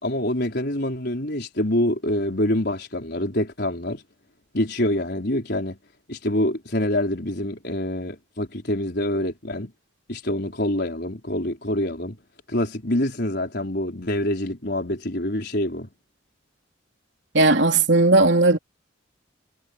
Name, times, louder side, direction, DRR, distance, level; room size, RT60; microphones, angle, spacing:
voice 1, 0.0-4.0 4.5-5.8 6.1-9.7 10.1-12.2 12.5-15.9, left 1 dB, 55° left, 4.9 m, -26 dB
voice 2, 17.3-18.6, right 2 dB, 60° right, 3.5 m, -17 dB
head